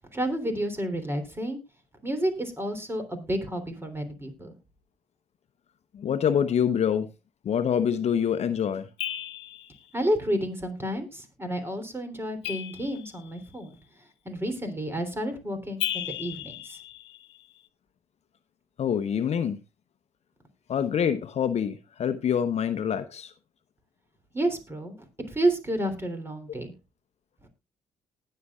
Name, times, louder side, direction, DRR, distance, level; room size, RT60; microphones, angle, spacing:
voice 1, 0.1-1.6 2.0-4.5 9.9-13.8 14.2-16.8 24.3-25.0 25.3-26.7, right 1 dB, 15° right, 3.2 m, -30 dB
voice 2, 5.9-7.1 7.4-8.9 18.8-19.6 20.7-23.3, left 8 dB, 50° left, 0.9 m, -26 dB
sound 1, 9.0-9.8 12.4-13.5 15.8-17.5, left 13 dB, 90° left, 0.6 m, -35 dB
19.0 x 6.7 x 2.4 m
hypercardioid pair, 50°, 14 cm